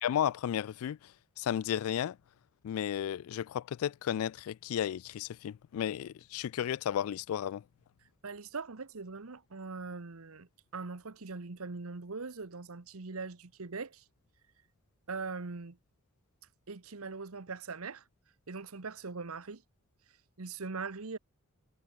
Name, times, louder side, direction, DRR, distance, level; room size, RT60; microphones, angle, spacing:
voice 1, 0.0-2.2 2.6-7.6, left 9 dB, 70° left, 0.3 m, -33 dB
voice 2, 8.2-14.0 15.1-15.8 16.7-18.0 18.5-19.6 20.4-21.2, right 4 dB, 75° right, 1.1 m, -41 dB
head